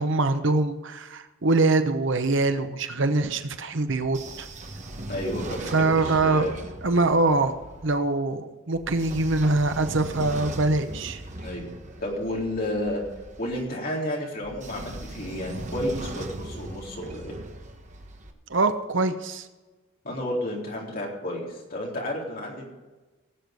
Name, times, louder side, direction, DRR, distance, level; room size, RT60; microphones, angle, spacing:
voice 1, 0.0-4.5 5.7-6.5 6.8-7.5 7.8-11.2 18.5-19.5, right 3 dB, 60° right, 9 dB, 0.9 m, -23 dB
Train / Sliding door, 3.9-7.9 8.7-13.6 14.4-18.3, right 1 dB, 35° right, 1.3 m, -39 dB
voice 2, 5.1-6.6 11.4-11.7 12.0-13.0 13.4-17.3 20.0-22.7, left 1 dB, 45° left, -3 dB, 3.9 m, -31 dB
18.0 x 8.0 x 5.3 m, 1.2 s
head